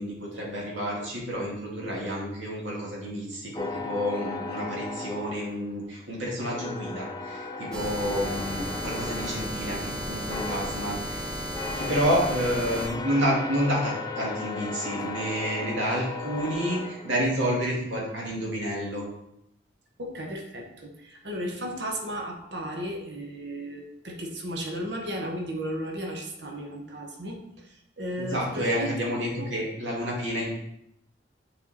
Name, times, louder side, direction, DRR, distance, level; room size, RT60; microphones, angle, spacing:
voice 1, 0.0-11.4 11.8-19.0 28.2-30.6, equal, 80° right, -3 dB, 2.3 m, -29 dB
train sounds, 3.6-6.0 6.4-17.6, left 3 dB, 20° left, 0.4 m, -37 dB
sound 1, 7.7-12.9, equal, 20° right, 1.0 m, -34 dB
voice 2, 20.0-27.4 28.0-29.0, equal, 65° right, 1 dB, 1.2 m, -34 dB
7.2 x 4.4 x 4.2 m, 0.80 s
head